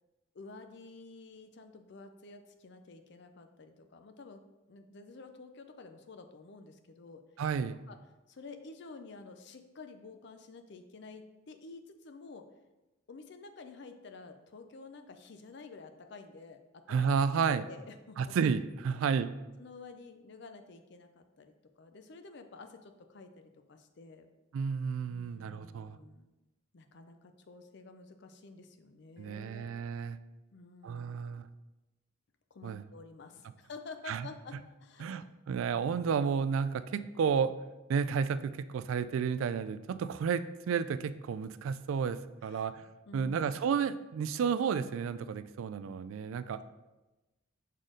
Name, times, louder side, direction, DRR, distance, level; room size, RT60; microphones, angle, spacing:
voice 1, 0.3-4.4 4.7-7.2 7.9-8.0 8.3-12.5 13.1-16.6 16.9-18.4 19.6-24.3 25.0-26.3 26.7-29.8 30.5-31.2 32.5-35.2 42.4-42.6 43.1-43.4, left 3 dB, 55° left, 7 dB, 0.5 m, -50 dB
voice 2, 7.4-7.8 16.9-17.6 18.2-19.3 24.5-26.0 29.2-30.2 30.8-31.5 32.6-32.8 34.1-34.3 35.0-37.5 37.9-42.9 43.1-46.6, right 6 dB, 75° right, 13 dB, 0.3 m, -31 dB
6.4 x 4.1 x 3.8 m, 1.1 s
head